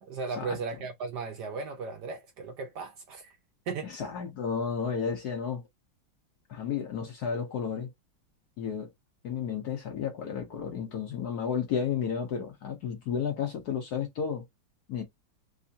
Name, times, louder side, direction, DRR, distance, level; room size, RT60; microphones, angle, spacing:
voice 1, 0.0-3.4 3.7-3.9, right 4 dB, 70° right, 1.1 m, -36 dB
voice 2, 3.8-5.6 6.5-7.9 8.6-8.9 9.2-14.5 14.9-15.0, left 7 dB, 60° left, 1.1 m, -32 dB
3.6 x 3.2 x 2.7 m
omnidirectional pair, 2.3 m